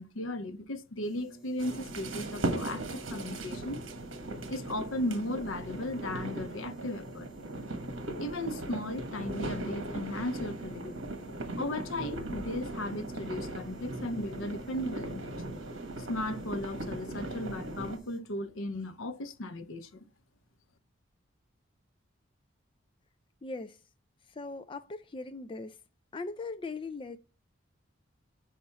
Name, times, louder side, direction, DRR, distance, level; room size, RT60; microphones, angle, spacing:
voice 1, 0.0-3.8 4.5-7.3 8.2-10.9 11.6-15.4 16.0-20.0, left 1 dB, 85° left, 0.8 m, -36 dB
sound 1, 1.0-18.2, right 3 dB, ahead, 2.3 m, -53 dB
sound 2, 1.6-18.0, right 2 dB, 75° right, 1.4 m, -38 dB
voice 2, 23.4-23.8 24.3-25.8 26.1-27.2, left 3 dB, 25° left, 0.4 m, -39 dB
5.4 x 5.0 x 5.7 m
head